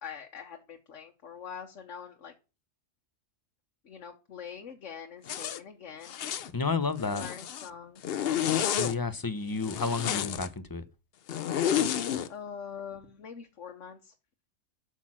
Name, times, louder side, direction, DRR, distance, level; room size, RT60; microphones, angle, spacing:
voice 1, 0.0-2.3 3.8-6.5 7.0-8.4 12.3-14.1, left 7 dB, 75° left, 1.4 m, -44 dB
Zipper (clothing), 5.3-5.6 6.0-6.5 7.0-7.7 8.0-8.9 9.6-10.5 11.3-12.3, left 9 dB, 60° left, 0.8 m, -30 dB
voice 2, 6.5-7.3 8.7-10.8, left 4 dB, 20° left, 0.7 m, -31 dB
8.5 x 6.3 x 7.4 m
omnidirectional pair, 1.3 m